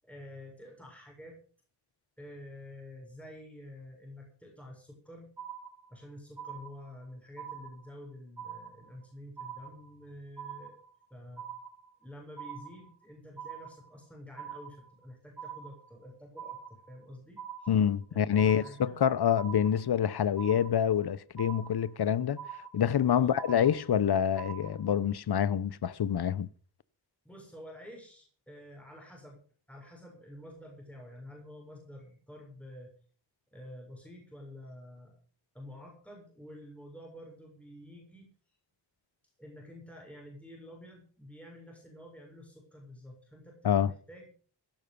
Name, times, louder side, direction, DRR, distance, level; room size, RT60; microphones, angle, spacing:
voice 1, 0.0-1.4 2.2-5.3 5.9-10.8 11.1-11.5 12.0-17.8 18.1-19.0 23.1-23.4 27.2-29.4 29.7-32.9 33.5-35.2 35.5-38.3 39.4-44.3, left 1 dB, 5° left, 7.0 m, -49 dB
sound 1, 5.4-6.0 6.4-7.0 7.4-8.0 8.4-9.0 9.4-10.0 10.4-11.0 11.4-12.0 12.4-13.0 13.4-14.0 14.4-15.0 15.4-16.0 16.4-17.0 17.4-18.0 18.4-19.0 19.4-20.0 20.4-21.0 21.4-22.0 22.4-23.0 23.4-24.0 24.4-25.0, right 8 dB, 65° right, 6.4 m, -44 dB
voice 2, 17.7-22.4 22.7-26.5 43.6-43.9, left 9 dB, 60° left, 0.9 m, -27 dB
16.5 x 11.5 x 5.4 m
wide cardioid pair, 90°, 43 cm